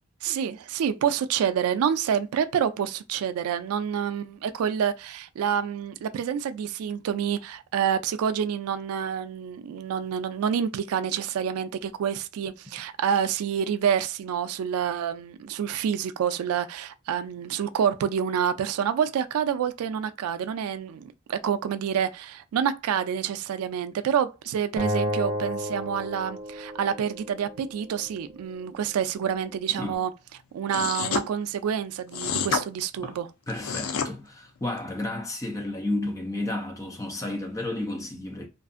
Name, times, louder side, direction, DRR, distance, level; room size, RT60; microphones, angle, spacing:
voice 1, 0.2-30.1 30.5-33.3, right 8 dB, 90° right, 0.3 m, -28 dB
Acoustic guitar, 24.8-28.0, equal, 30° right, 0.8 m, -32 dB
sound 1, 30.7-31.3 32.1-32.6 33.5-34.1, left 6 dB, 75° left, 0.4 m, -28 dB
voice 2, 33.5-38.5, left 2 dB, 15° left, 0.4 m, -32 dB
2.5 x 2.4 x 2.4 m
head